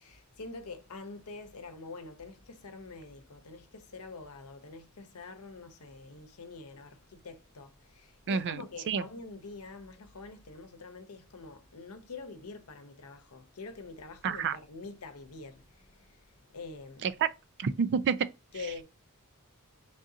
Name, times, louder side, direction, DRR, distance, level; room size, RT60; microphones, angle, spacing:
voice 1, 0.0-17.2 17.7-17.8 18.5-18.8, left 3 dB, 75° left, 0.8 m, -46 dB
voice 2, 8.3-9.0 14.2-14.6 17.0-17.1 17.6-18.2, right 5 dB, 50° right, 0.4 m, -29 dB
3.7 x 2.7 x 3.7 m
head